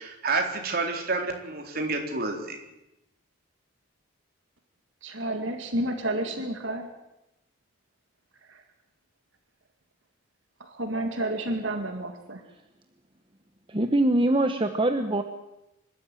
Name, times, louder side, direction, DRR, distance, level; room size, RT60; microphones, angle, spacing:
voice 1, 0.0-2.6, right 3 dB, 50° right, 3 dB, 4.0 m, -29 dB
voice 2, 5.0-6.9 8.5-8.6 10.6-12.4, right 1 dB, 65° right, 5 dB, 2.1 m, -30 dB
voice 3, 13.7-15.2, right 1 dB, 25° right, 6 dB, 1.1 m, -23 dB
26.0 x 13.0 x 9.1 m, 0.90 s
head